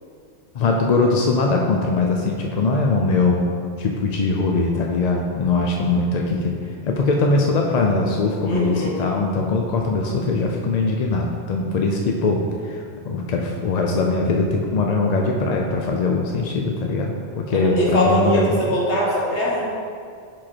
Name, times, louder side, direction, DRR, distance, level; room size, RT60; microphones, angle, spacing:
voice 1, 0.5-3.5 3.8-6.5 6.8-18.6, left 3 dB, 55° left, 1 dB, 0.5 m, -21 dB
voice 2, 8.4-8.9 17.5-19.7, equal, 90° left, -5 dB, 1.6 m, -21 dB
5.7 x 5.1 x 4.3 m, 2.3 s
omnidirectional pair, 1.1 m